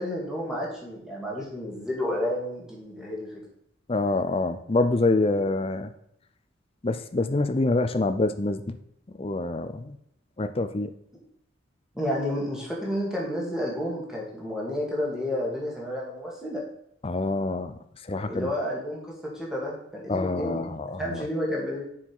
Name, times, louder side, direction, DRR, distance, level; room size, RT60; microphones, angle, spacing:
voice 1, 0.0-3.4 11.9-16.6 18.3-20.6 21.0-21.9, left 1 dB, 5° right, -4 dB, 1.9 m, -31 dB
voice 2, 3.9-5.9 6.8-8.8 9.2-10.0 10.4-10.9 17.0-17.8 18.1-18.5 20.1-21.2, left 2 dB, 30° left, 10 dB, 0.5 m, -26 dB
6.8 x 5.7 x 4.6 m, 0.74 s
head